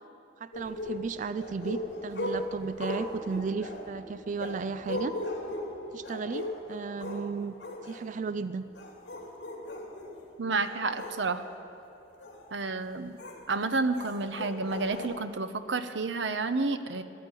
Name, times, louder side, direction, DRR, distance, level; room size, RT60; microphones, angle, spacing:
voice 1, 0.4-5.1 5.9-7.5 7.8-8.6, right 5 dB, 45° right, 12 dB, 0.4 m, -34 dB
sound 1, 0.5-7.3 7.6-8.0 8.6-10.2 10.6-11.5 12.2-12.4 13.2-13.4 13.9-15.1, left 1 dB, 70° left, 3.1 m, -37 dB
voice 2, 10.4-11.4 12.5-13.2 13.5-17.0, right 3 dB, 85° right, 10 dB, 0.8 m, -30 dB
14.5 x 10.5 x 9.1 m, 2.8 s
head